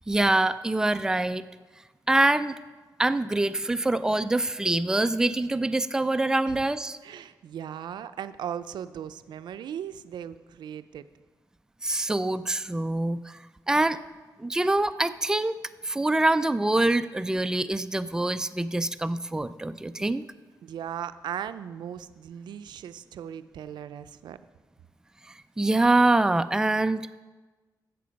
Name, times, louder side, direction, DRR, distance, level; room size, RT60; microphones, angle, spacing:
voice 1, 0.1-1.4 2.1-2.6 3.0-7.0 11.8-13.4 13.7-14.0 14.4-15.5 15.8-20.2 25.6-27.1, right 2 dB, 10° right, 12 dB, 0.4 m, -24 dB
voice 2, 7.0-11.1 20.0-20.1 20.6-24.4, right 9 dB, 90° right, 13 dB, 0.4 m, -38 dB
13.5 x 7.6 x 5.2 m, 1.3 s
cardioid pair, 105°, 7 cm